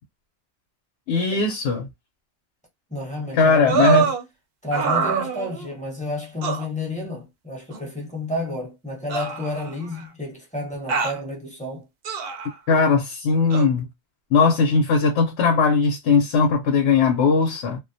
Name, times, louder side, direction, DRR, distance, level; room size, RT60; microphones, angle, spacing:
voice 1, 1.1-1.9 3.3-4.1 12.7-13.9 14.3-17.8, left 5 dB, 85° left, 0.9 m, -19 dB
voice 2, 2.9-4.1 4.6-11.8, left 1 dB, 5° left, 0.8 m, -31 dB
sound 1, 3.7-4.2 4.7-5.7 6.4-6.6 7.7-7.8 9.1-10.0 10.9-11.2 12.0-12.5 13.5-13.7, right 6 dB, 65° right, 0.7 m, -24 dB
2.4 x 2.1 x 2.5 m
omnidirectional pair, 1.2 m